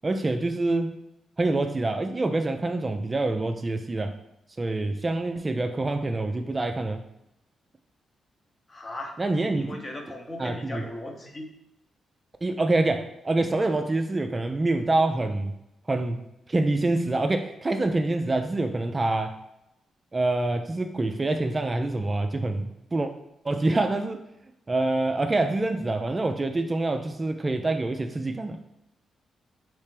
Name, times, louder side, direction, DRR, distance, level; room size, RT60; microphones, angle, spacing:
voice 1, 0.0-1.0 1.4-4.1 4.6-7.0 9.2-9.8 10.4-10.8 12.4-15.5 15.9-16.2 16.5-19.4 20.1-23.1 23.4-24.2 24.7-28.6, right 2 dB, 30° right, 6 dB, 0.3 m, -26 dB
voice 2, 8.7-9.2 9.5-11.5, left 1 dB, 30° left, 2 dB, 0.8 m, -37 dB
3.3 x 3.2 x 3.2 m, 0.87 s
supercardioid pair, 55°, 0 cm